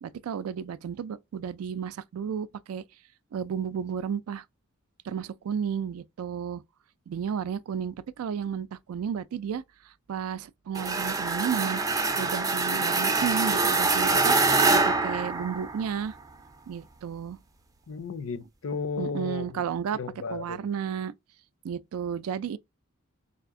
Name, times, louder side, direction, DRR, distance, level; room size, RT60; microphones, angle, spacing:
voice 1, 0.0-2.8 3.3-4.4 5.1-6.6 7.1-9.6 10.1-11.8 12.2-16.2 16.7-17.4 19.0-20.0 20.3-21.1 21.6-22.6, right 7 dB, 85° right, 0.3 m, -32 dB
sound 1, 10.7-16.0, right 3 dB, 15° right, 0.4 m, -25 dB
voice 2, 17.9-19.6 19.9-20.7, left 4 dB, 65° left, 0.5 m, -34 dB
3.3 x 2.8 x 3.6 m
head